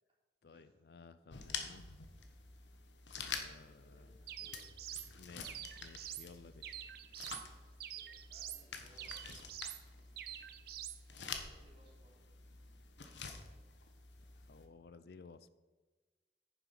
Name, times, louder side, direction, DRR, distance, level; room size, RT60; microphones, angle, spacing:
voice 1, 0.4-1.8 3.3-4.1 5.1-6.8 14.4-15.5, left 4 dB, 60° left, 14 dB, 0.4 m, -57 dB
sound 1, 1.3-14.6, left 5 dB, 85° left, 1.2 m, -48 dB
voice 2, 3.6-4.7 7.8-9.3 11.3-12.3, equal, 30° right, -4 dB, 3.3 m, -67 dB
sound 2, 4.3-5.1 5.4-6.3 6.6-7.5 7.8-8.6 9.0-9.8 10.2-11.0, right 11 dB, 55° right, 0.6 m, -46 dB
9.7 x 7.1 x 5.6 m, 1.2 s
head